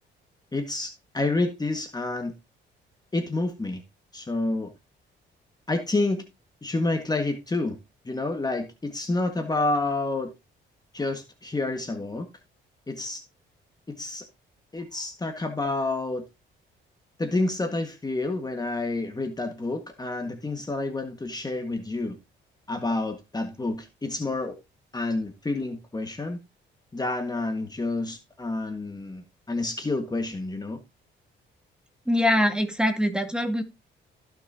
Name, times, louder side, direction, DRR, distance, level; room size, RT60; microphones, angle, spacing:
voice 1, 0.5-2.3 3.1-3.8 4.1-4.7 5.7-6.2 6.6-7.8 8.0-10.3 10.9-12.3 12.9-13.2 13.9-14.2 14.7-16.2 17.2-22.2 22.7-24.6 24.9-26.4 26.9-30.8, left 2 dB, 20° left, 1.7 m, -29 dB
voice 2, 32.1-33.6, left 1 dB, 5° right, 2.2 m, -23 dB
16.0 x 6.4 x 2.8 m
cardioid pair, 90°, 20 cm